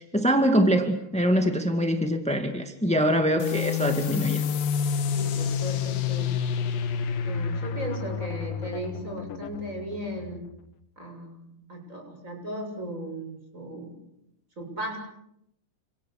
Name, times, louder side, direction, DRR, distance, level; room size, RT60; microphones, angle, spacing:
voice 1, 0.0-4.4, equal, 5° left, 5 dB, 0.8 m, -24 dB
sound 1, 3.4-10.6, left 7 dB, 70° left, 3.0 m, -29 dB
voice 2, 5.1-6.3 7.2-10.4 11.0-14.0 14.6-15.0, right 1 dB, 20° right, 3 dB, 7.4 m, -36 dB
30.0 x 27.0 x 6.8 m, 0.79 s
omnidirectional pair, 4.4 m